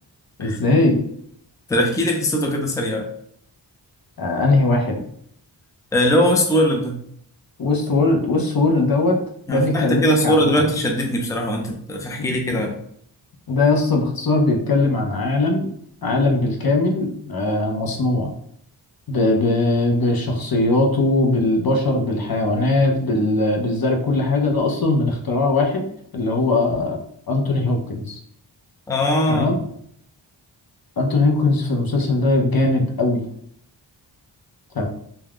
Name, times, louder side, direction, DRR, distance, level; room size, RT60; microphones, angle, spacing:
voice 1, 0.4-1.0 4.2-5.0 7.6-9.2 9.5-10.6 12.2-12.6 13.5-15.7 16.0-18.3 19.1-25.8 26.1-27.0 27.3-28.2 29.3-29.6 31.0-33.3 34.7-34.9, left 2 dB, 50° left, 1 dB, 0.7 m, -20 dB
voice 2, 1.7-3.1 5.9-7.0 9.5-12.8 28.9-29.5, equal, 5° left, 2 dB, 0.5 m, -20 dB
2.3 x 2.2 x 3.5 m, 0.68 s
cardioid pair, 45°, 45 cm